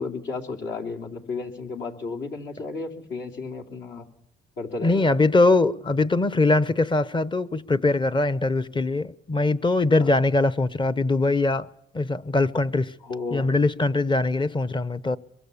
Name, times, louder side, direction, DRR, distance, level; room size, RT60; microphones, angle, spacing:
voice 1, 0.0-4.1 4.6-5.1 10.0-10.1 13.0-13.5, left 4 dB, 65° left, 3.0 m, -33 dB
voice 2, 4.8-11.7 11.9-12.9 13.3-15.2, left 2 dB, 25° left, 0.8 m, -22 dB
23.0 x 22.5 x 6.9 m
cardioid pair, 90°, 20 cm